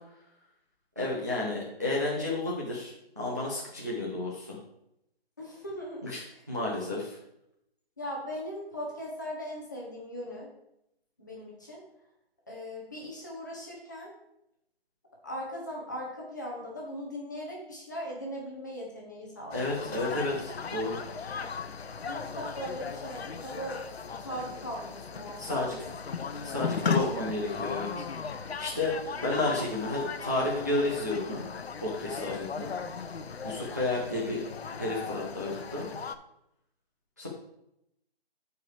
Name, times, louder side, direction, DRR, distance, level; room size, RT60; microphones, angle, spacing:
voice 1, 1.0-4.6 6.0-7.2 19.5-21.0 25.4-25.7 26.4-28.0 28.6-28.9 29.2-31.4 31.8-32.7 33.4-34.4 34.8-35.8 37.2-37.3, left 2 dB, 20° right, -5 dB, 0.6 m, -31 dB
voice 2, 5.4-6.1 8.0-10.5 11.2-11.8 12.5-14.1 15.2-20.0 22.0-23.8 24.2-25.9 26.2-26.9, equal, 20° left, -3 dB, 1.0 m, -39 dB
sound 1, 19.5-36.2, left 5 dB, 85° left, 0.8 m, -37 dB
12.5 x 4.7 x 3.3 m, 0.81 s
hypercardioid pair, 180°, 31 cm